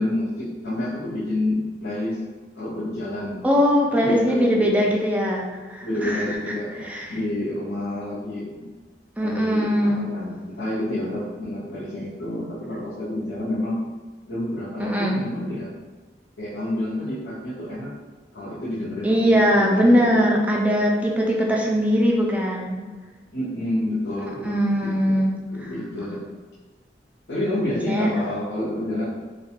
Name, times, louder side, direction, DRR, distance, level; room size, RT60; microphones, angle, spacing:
voice 1, 0.0-2.2 2.5-3.5 4.0-5.0 5.8-8.7 9.2-13.8 14.3-15.7 16.4-17.9 18.3-20.2 23.3-24.6 24.8-25.2 25.5-26.2 27.3-29.0, left 1 dB, 80° left, -11 dB, 0.7 m, -29 dB
voice 2, 3.4-6.2 6.8-7.1 9.2-10.0 14.8-15.2 19.0-22.8 24.4-25.3 27.9-28.1, equal, 10° right, -1 dB, 0.3 m, -20 dB
2.4 x 2.2 x 2.8 m, 1.4 s
head